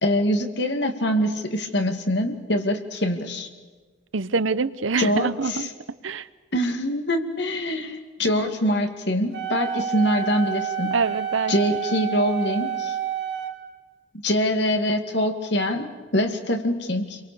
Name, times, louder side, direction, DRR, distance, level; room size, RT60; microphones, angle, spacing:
voice 1, 0.0-3.5 5.0-5.7 6.5-11.0 11.5-13.0 14.2-17.2, equal, 60° left, 5 dB, 2.3 m, -24 dB
voice 2, 4.1-5.7 6.0-6.3 10.9-11.8, right 4 dB, 90° right, 15 dB, 0.9 m, -25 dB
Wind instrument woodwind instrument, 9.3-13.5, right 8 dB, 65° right, 4.1 m, -29 dB
28.5 x 23.5 x 7.0 m, 1.4 s
head